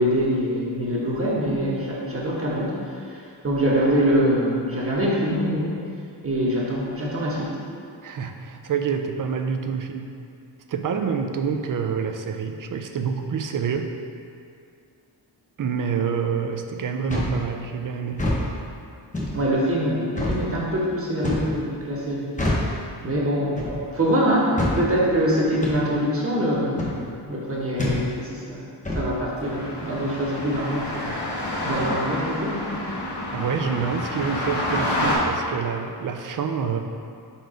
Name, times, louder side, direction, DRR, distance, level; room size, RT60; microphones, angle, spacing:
voice 1, 0.0-2.8 3.4-5.8 6.2-7.5 19.3-22.3 23.0-28.7 28.9-32.6, equal, 35° right, -5 dB, 1.1 m, -24 dB
voice 2, 8.0-10.1 10.7-13.9 15.6-18.3 33.3-36.8, right 6 dB, 50° right, 5 dB, 0.5 m, -27 dB
sound 1, 17.1-17.4 18.1-18.4 19.1-19.4 20.2-20.4 21.2-21.5 22.4-22.7 23.6-23.8 24.6-24.8 25.6-25.8 26.8-27.0 27.8-28.0 28.8-29.1, left 1 dB, 20° left, 0.8 m, -25 dB
sound 2, 29.4-35.1, left 1 dB, 75° left, 1.5 m, -28 dB
4.6 x 4.4 x 5.0 m, 2.4 s
wide cardioid pair, 175°, 41 cm